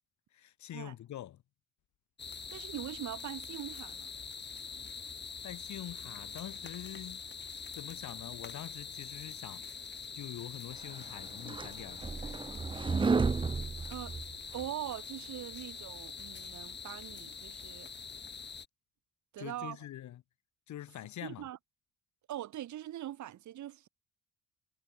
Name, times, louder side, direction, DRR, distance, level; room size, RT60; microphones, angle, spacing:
voice 1, 0.3-1.4 5.4-7.2 7.7-9.7 10.1-12.4 19.4-20.2 20.7-21.5, left 12 dB, 70° left, 2.1 m, -45 dB
sound 1, 2.2-18.7, left 6 dB, 35° left, 2.5 m, -44 dB
voice 2, 2.5-4.1 13.3-13.4 13.9-14.2 14.5-17.9 19.3-19.8 21.2-21.6 22.3-23.9, right 12 dB, 70° right, 1.9 m, -42 dB
sound 2, 11.0-14.7, right 4 dB, 15° right, 0.5 m, -32 dB
cardioid pair, 90°, 30 cm